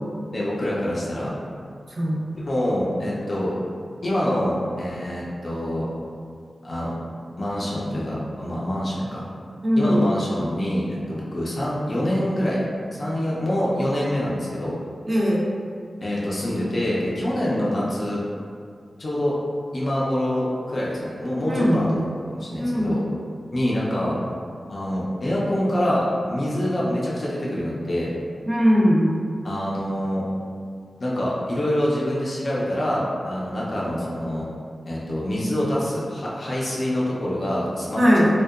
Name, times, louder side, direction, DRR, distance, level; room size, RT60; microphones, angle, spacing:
voice 1, 0.3-1.3 2.3-3.6 4.0-5.9 6.6-6.9 7.4-9.2 9.8-12.6 12.9-14.8 16.0-18.2 19.0-19.3 19.7-23.0 23.5-24.1 24.7-28.1 29.4-30.3 31.0-34.5 34.9-38.2, left 1 dB, 45° left, -6 dB, 0.5 m, -25 dB
voice 2, 9.6-10.1 15.1-15.4 21.5-21.9 22.6-22.9 28.5-29.1 38.0-38.3, equal, 45° right, -5 dB, 0.4 m, -19 dB
2.7 x 2.1 x 2.3 m, 2.2 s
wide cardioid pair, 100°, 0 cm